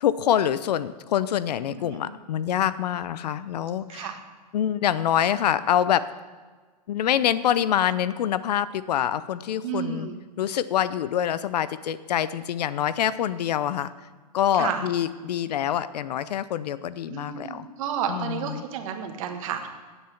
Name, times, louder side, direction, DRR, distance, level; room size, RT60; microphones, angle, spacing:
voice 1, 0.0-4.2 4.5-6.1 6.9-10.1 10.4-13.9 14.3-17.7 18.1-18.6, left 10 dB, 75° left, 16 dB, 0.5 m, -25 dB
voice 2, 1.7-2.1 3.9-4.2 9.6-10.2 14.5-14.8 17.1-19.7, right 8 dB, 55° right, 4 dB, 1.4 m, -31 dB
9.3 x 7.7 x 5.8 m, 1.4 s
hypercardioid pair, 135°, 21 cm